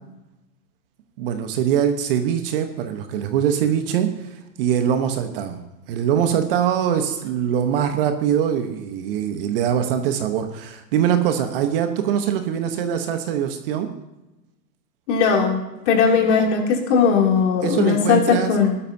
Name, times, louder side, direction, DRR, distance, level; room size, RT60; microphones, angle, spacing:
voice 1, 1.2-4.3 4.6-5.6 5.9-13.9 17.6-18.5, right 9 dB, 35° right, 7 dB, 1.1 m, -22 dB
voice 2, 15.1-18.8, left 6 dB, 45° left, 1 dB, 2.9 m, -18 dB
19.5 x 12.5 x 2.7 m, 1.0 s
hypercardioid pair, 140°, 50 cm